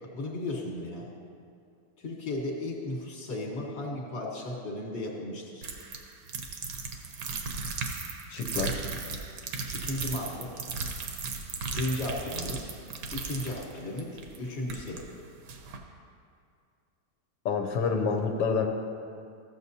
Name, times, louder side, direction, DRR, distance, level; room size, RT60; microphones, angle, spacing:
voice 1, 0.0-1.1 2.0-5.7 9.7-10.5 11.7-12.7 13.1-15.1, left 1 dB, 40° left, -1 dB, 1.4 m, -35 dB
sound 1, 5.6-15.0 15.5-15.8, right 4 dB, 65° right, 1.3 m, -36 dB
voice 2, 8.3-8.9 17.4-18.7, left 5 dB, 70° left, 4 dB, 1.2 m, -28 dB
14.0 x 7.1 x 2.7 m, 2.4 s
omnidirectional pair, 2.1 m